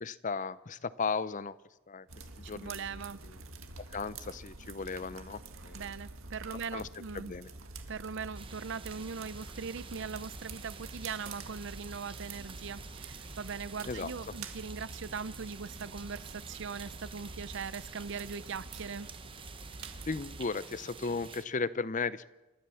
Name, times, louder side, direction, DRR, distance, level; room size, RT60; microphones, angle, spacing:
voice 1, 0.0-1.5 1.9-2.1 2.5-2.8 3.9-5.8 6.7-6.9 7.1-7.5 13.9-14.1 20.1-22.3, left 4 dB, 35° left, 16 dB, 0.6 m, -35 dB
sound 1, 2.1-20.4, right 3 dB, 75° right, 2.0 m, -47 dB
voice 2, 2.4-3.2 5.7-7.3 7.9-19.1, right 5 dB, 60° right, 17 dB, 0.6 m, -40 dB
sound 2, 8.3-21.4, right 4 dB, 25° right, 1.1 m, -49 dB
28.0 x 13.5 x 7.1 m, 1.1 s
head